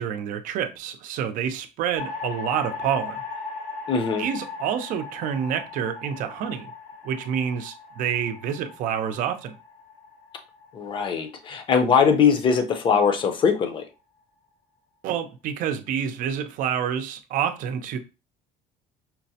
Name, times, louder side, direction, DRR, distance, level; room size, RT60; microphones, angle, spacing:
voice 1, 0.0-3.2 4.2-6.7 7.0-9.6 15.0-18.0, right 8 dB, 60° right, 0.6 m, -28 dB
sound 1, 2.0-12.3, left 4 dB, 75° left, 0.8 m, -38 dB
voice 2, 3.9-4.2 10.7-13.8, left 6 dB, 35° left, 0.6 m, -21 dB
5.8 x 2.1 x 2.8 m
cardioid pair, 155°, 15 cm